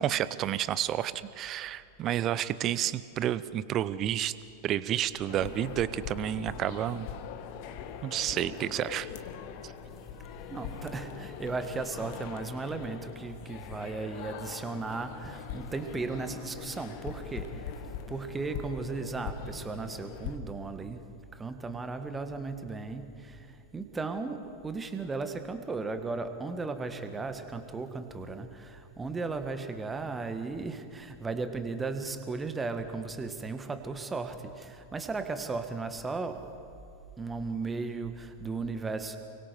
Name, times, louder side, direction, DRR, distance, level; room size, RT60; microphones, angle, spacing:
voice 1, 0.0-4.3 4.6-7.1 8.0-9.1 9.6-9.7, right 11 dB, 35° right, 16 dB, 0.8 m, -30 dB
sound 1, 5.3-20.4, left 7 dB, 45° left, 1.8 m, -42 dB
voice 2, 10.5-21.1 21.3-36.5 37.2-39.2, right 3 dB, 15° right, 8 dB, 1.8 m, -36 dB
29.5 x 23.0 x 4.7 m, 2.5 s
figure-of-eight pair, 90°, 0 cm